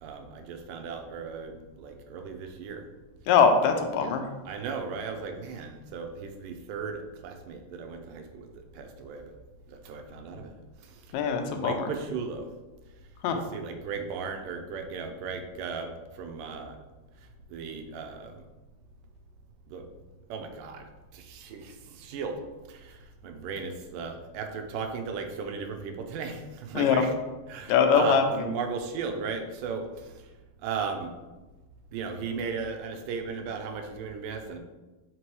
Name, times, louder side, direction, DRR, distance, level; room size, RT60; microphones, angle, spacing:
voice 1, 0.0-2.9 4.5-8.5 8.7-9.2 9.7-10.5 10.8-11.0 11.6-12.5 13.3-16.8 17.5-18.3 19.7-19.8 20.3-20.9 21.1-22.4 22.7-27.1 27.5-30.1 30.6-31.1 31.9-34.6, right 5 dB, 85° right, 5 dB, 2.2 m, -36 dB
voice 2, 3.3-4.3 11.1-11.8 13.2-13.4 26.7-27.0 27.7-28.2, left 6 dB, 85° left, 6 dB, 2.2 m, -22 dB
5.9 x 5.2 x 3.1 m, 1.2 s
omnidirectional pair, 3.8 m